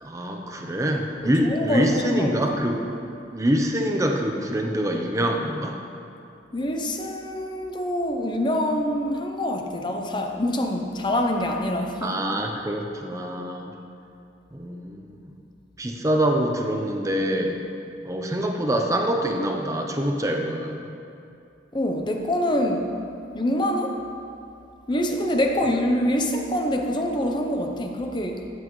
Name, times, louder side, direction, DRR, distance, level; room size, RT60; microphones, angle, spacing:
voice 1, 0.0-2.8 3.3-5.8 12.0-13.7 14.5-15.3 15.8-17.6 18.0-20.8, equal, 15° right, 2 dB, 0.7 m, -25 dB
voice 2, 1.2-2.6 6.5-12.2 21.7-22.9 23.3-24.0 24.9-28.4, left 1 dB, 25° left, 3 dB, 0.7 m, -25 dB
13.5 x 8.0 x 3.2 m, 2.6 s
head